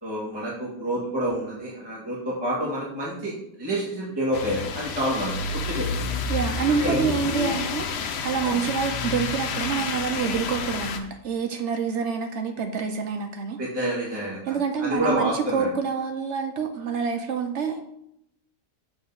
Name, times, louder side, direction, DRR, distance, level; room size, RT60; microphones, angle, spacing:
voice 1, 0.0-6.1 6.7-7.1 8.4-8.6 13.6-15.7, equal, 15° right, -6 dB, 1.8 m, -28 dB
sound 1, 4.3-11.0, left 5 dB, 85° left, 1.3 m, -29 dB
voice 2, 6.3-13.6 14.5-17.8, right 6 dB, 60° right, 6 dB, 0.8 m, -27 dB
7.0 x 3.8 x 5.5 m, 0.75 s
omnidirectional pair, 1.7 m